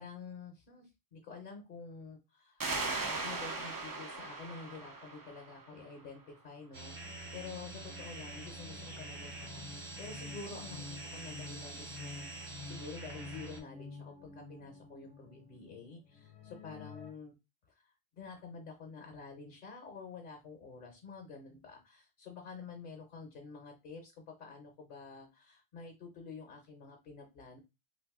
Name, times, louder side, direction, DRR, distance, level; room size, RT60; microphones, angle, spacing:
voice 1, 0.0-17.3 17.8-27.6, left 4 dB, 55° left, 3 dB, 0.9 m, -49 dB
sound 1, 2.6-6.0, right 3 dB, 35° right, 0.3 m, -38 dB
sound 2, 6.7-13.6, right 3 dB, 65° right, 1.0 m, -46 dB
sound 3, 7.0-17.1, left 4 dB, 85° left, 0.9 m, -51 dB
2.6 x 2.5 x 3.5 m, 0.26 s
omnidirectional pair, 1.1 m